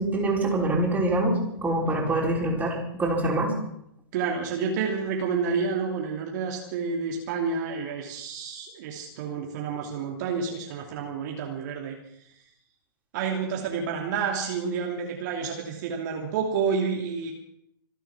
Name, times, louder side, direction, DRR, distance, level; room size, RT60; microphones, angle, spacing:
voice 1, 0.0-3.5, right 1 dB, 10° right, -2 dB, 5.2 m, -25 dB
voice 2, 4.1-12.0 13.1-17.3, right 5 dB, 50° right, 1 dB, 2.8 m, -29 dB
25.5 x 9.1 x 6.0 m, 0.74 s
figure-of-eight pair, 115°, 13 cm